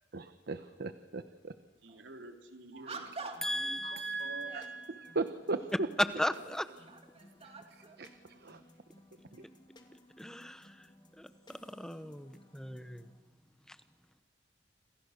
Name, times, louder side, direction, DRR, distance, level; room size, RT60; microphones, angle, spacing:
voice 1, 0.1-1.5 2.7-3.1 3.8-5.6 7.4-8.6 9.3-9.4, right 3 dB, 60° right, 10 dB, 1.1 m, -39 dB
voice 2, 1.8-3.8 4.2-4.6, right 2 dB, 80° right, 4 dB, 3.5 m, -49 dB
sound 1, 1.9-2.1 2.8-3.6 4.2-4.8 5.7-5.8 6.5-8.1, right 3 dB, 35° right, 2.4 m, -47 dB
sound 2, 2.9-13.2, left 1 dB, 25° left, 2.8 m, -60 dB
voice 3, 3.4-4.8 6.0-6.6 10.2-10.9 11.2-13.1 13.7-13.8, equal, 5° left, 11 dB, 1.0 m, -36 dB
28.5 x 26.0 x 6.6 m, 1.3 s
head